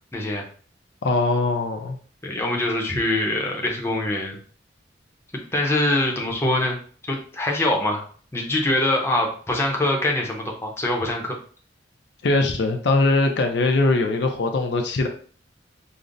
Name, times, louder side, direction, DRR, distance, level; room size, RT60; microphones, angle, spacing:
voice 1, 0.1-0.4 2.2-4.4 5.5-6.8 7.1-8.0 8.3-11.4, left 1 dB, 15° left, 0 dB, 0.6 m, -23 dB
voice 2, 1.0-2.0 12.2-15.1, left 2 dB, 65° left, 4 dB, 0.5 m, -21 dB
5.1 x 2.0 x 2.5 m, 0.43 s
head